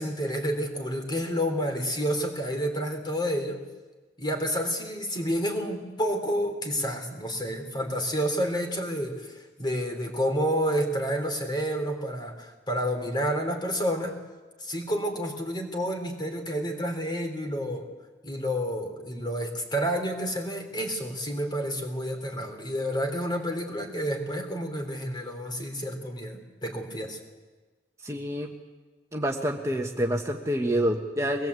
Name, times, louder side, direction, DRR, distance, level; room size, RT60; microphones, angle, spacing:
voice 1, 0.0-3.6 4.2-14.2 14.6-17.9 18.2-27.2, equal, 25° left, 3 dB, 3.6 m, -29 dB
voice 2, 28.0-28.5 29.1-31.5, equal, 15° right, 1 dB, 1.3 m, -27 dB
23.5 x 20.5 x 8.3 m, 1.3 s
head